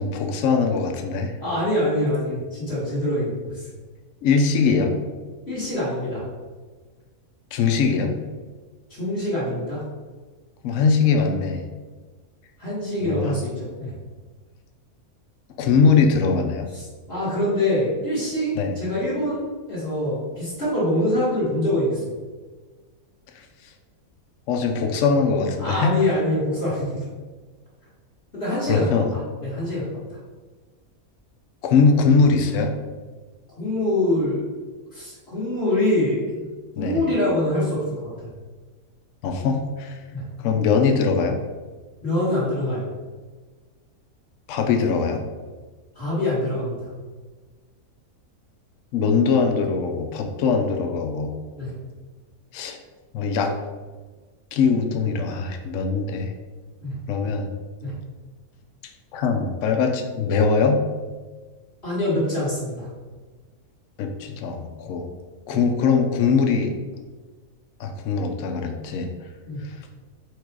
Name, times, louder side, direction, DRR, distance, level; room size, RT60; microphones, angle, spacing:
voice 1, 0.0-1.3 4.2-5.0 7.5-8.2 10.6-11.6 13.0-13.4 15.6-16.7 18.6-18.7 24.5-25.9 28.7-29.1 31.6-32.7 36.8-37.0 39.2-40.0 40.4-41.4 44.5-45.2 48.9-51.3 52.5-52.8 53.1-53.5 54.5-56.3 57.1-57.5 59.1-60.8 64.0-65.1 65.5-66.7 67.8-69.1 69.6-69.7, left 5 dB, 70° left, 4 dB, 0.9 m, -21 dB
voice 2, 1.4-3.6 5.5-6.2 8.9-9.8 12.6-13.9 16.7-19.4 19.7-22.0 25.6-26.9 28.3-28.9 29.4-29.8 30.1-30.2 33.6-34.4 34.9-36.5 36.8-38.1 40.1-40.2 42.0-42.9 45.9-46.9 51.6-51.7 56.8-57.0 57.8-57.9 61.8-62.9 65.5-65.6 69.5-69.6, left 1 dB, 45° left, -10 dB, 1.8 m, -24 dB
4.6 x 2.4 x 4.5 m, 1.4 s
omnidirectional pair, 1.6 m